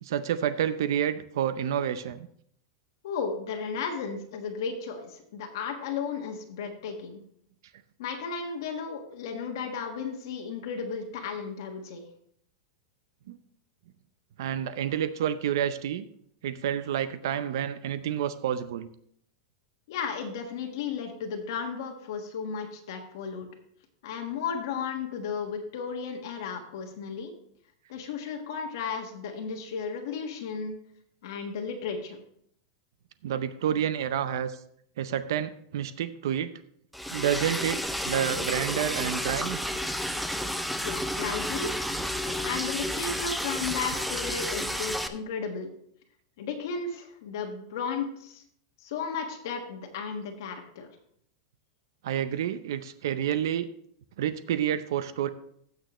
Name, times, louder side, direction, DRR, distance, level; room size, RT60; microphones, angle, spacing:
voice 1, 0.0-2.3 13.3-13.4 14.4-16.0 16.4-18.9 33.2-34.6 35.0-36.5 37.1-39.6 52.0-53.7 54.2-55.3, right 9 dB, 65° right, 13 dB, 0.6 m, -29 dB
voice 2, 3.0-7.2 8.0-12.0 19.9-23.5 24.0-27.3 27.9-30.8 31.2-32.2 40.8-41.7 42.4-45.7 46.4-48.4 48.8-50.9, left 6 dB, 55° left, 2 dB, 1.4 m, -34 dB
Liquid, 36.9-45.1, equal, ahead, 0.4 m, -31 dB
15.5 x 6.6 x 3.1 m, 0.66 s
supercardioid pair, 175°, 2 cm